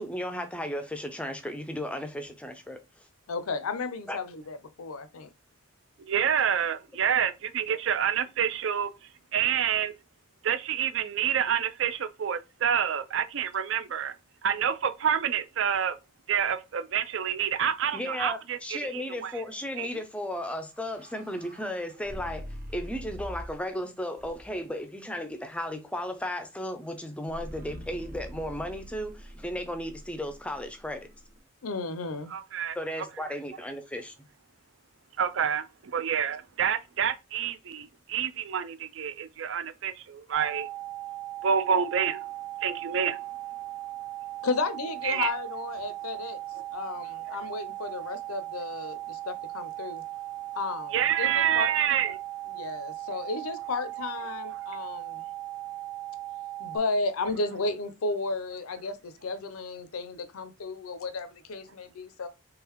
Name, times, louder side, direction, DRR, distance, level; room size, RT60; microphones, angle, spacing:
voice 1, 0.0-3.1 4.1-4.2 17.9-31.1 32.8-34.1, left 1 dB, 5° left, 0.4 m, -35 dB
voice 2, 3.3-5.3 31.6-32.3 44.4-46.4 46.7-50.0 50.5-51.7 52.5-55.3 56.6-62.3, left 3 dB, 80° left, 0.5 m, -33 dB
voice 3, 6.0-9.9 10.4-14.1 14.4-15.9 16.3-19.4 19.8-19.9 32.3-32.8 35.2-40.7 41.4-42.2 42.6-43.2 45.0-45.3 46.1-46.2 46.5-46.6 47.3-47.5 50.9-52.2, right 8 dB, 60° right, 0.4 m, -28 dB
sound 1, 20.6-23.7 24.2-24.7 27.3-31.4, equal, 40° right, 1.0 m, -44 dB
sound 2, 40.3-56.8, right 15 dB, 75° right, 0.8 m, -38 dB
3.8 x 3.4 x 3.0 m
head